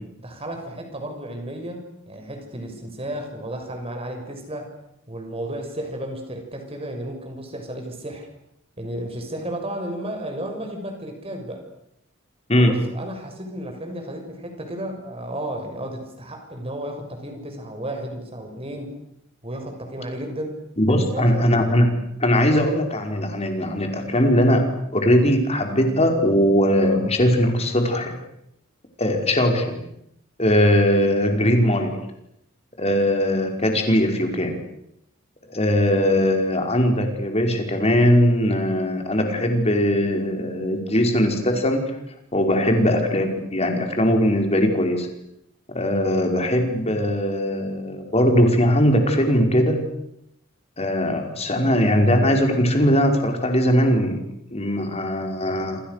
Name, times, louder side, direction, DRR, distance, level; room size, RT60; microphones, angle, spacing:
voice 1, 0.2-4.7 5.1-8.3 8.8-11.6 12.6-19.0 19.4-20.6 20.9-21.5, right 1 dB, 30° right, 4 dB, 6.5 m, -33 dB
voice 2, 20.8-21.9 22.2-28.2 29.0-29.8 30.4-31.9 32.8-34.6 35.5-41.9 42.3-45.1 45.7-49.8 50.8-54.2 54.5-55.8, equal, 30° left, 4 dB, 5.2 m, -20 dB
28.0 x 27.0 x 6.8 m, 0.78 s
head